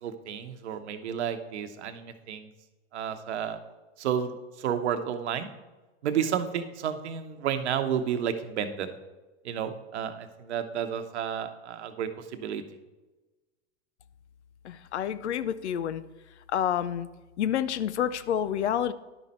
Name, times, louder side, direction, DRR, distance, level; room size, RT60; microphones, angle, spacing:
voice 1, 0.0-2.5 2.9-3.6 4.0-5.5 6.0-8.9 9.4-12.6, right 8 dB, 80° right, 9 dB, 0.9 m, -31 dB
voice 2, 14.6-16.0 16.5-17.1 17.4-18.9, left 9 dB, 90° left, 15 dB, 0.6 m, -28 dB
11.0 x 5.3 x 4.3 m, 1.1 s
hypercardioid pair, 105°, 33 cm